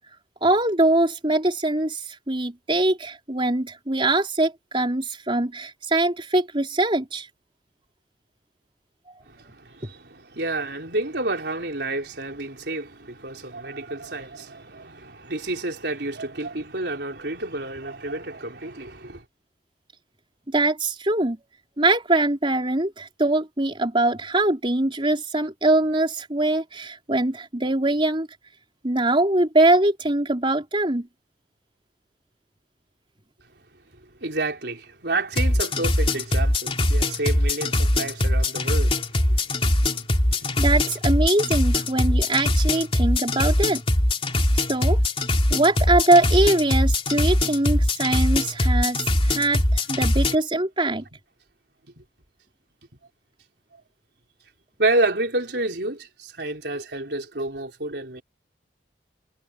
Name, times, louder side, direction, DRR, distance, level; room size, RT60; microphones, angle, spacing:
voice 1, 0.4-7.3 20.5-21.4 21.8-28.3 28.8-31.1 40.6-43.8 44.5-45.0 45.5-51.0, right 2 dB, 30° right, 4.3 m, -22 dB
voice 2, 9.3-19.2 34.2-39.0 39.3-39.4 40.4-40.5 54.8-58.2, right 2 dB, 70° right, 4.3 m, -29 dB
sound 1, 35.3-50.3, left 1 dB, 35° left, 2.9 m, -22 dB
head